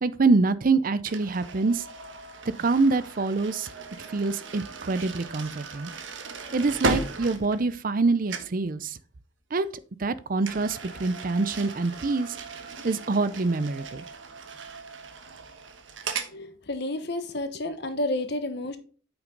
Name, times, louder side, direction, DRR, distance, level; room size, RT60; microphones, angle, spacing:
voice 1, 0.0-1.9 2.6-3.7 4.1-5.9 6.5-9.0 9.5-9.7 10.0-12.4 12.8-14.0, right 3 dB, 45° right, 0.5 m, -25 dB
sound 1, 1.1-8.0 8.3-8.6 10.4-16.3, right 3 dB, 70° right, 1.3 m, -36 dB
voice 2, 16.3-18.8, left 1 dB, 60° left, 1.3 m, -30 dB
8.6 x 6.0 x 3.9 m
head